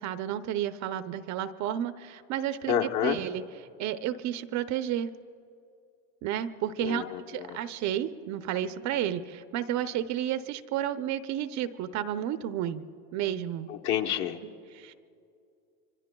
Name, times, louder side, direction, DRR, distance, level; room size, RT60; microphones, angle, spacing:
voice 1, 0.0-2.7 3.0-3.4 3.8-5.1 6.2-12.8 13.1-13.7 14.4-14.9, right 10 dB, 35° right, 11 dB, 0.6 m, -32 dB
voice 2, 2.7-3.2 6.8-7.6 13.7-14.4, left 9 dB, 50° left, 3 dB, 1.3 m, -29 dB
26.0 x 24.5 x 2.3 m, 2.4 s
hypercardioid pair, 110°, 48 cm